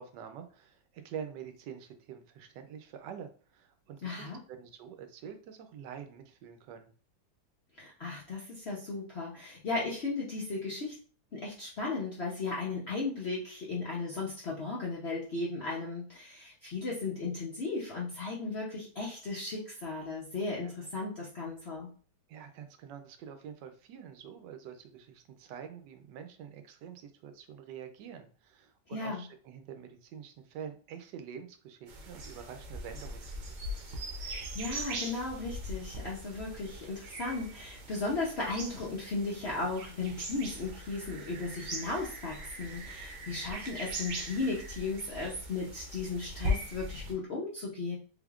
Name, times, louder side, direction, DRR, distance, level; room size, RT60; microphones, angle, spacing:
voice 1, 0.0-6.9 20.6-20.7 22.3-33.3, right 8 dB, 85° right, 7 dB, 1.2 m, -46 dB
voice 2, 4.0-4.4 7.8-10.9 11.3-21.9 28.9-29.2 34.2-48.0, left 3 dB, 60° left, -4 dB, 0.6 m, -36 dB
sound 1, 31.9-47.1, equal, 60° right, 0.9 m, -40 dB
3.5 x 3.4 x 2.3 m, 0.41 s
omnidirectional pair, 1.8 m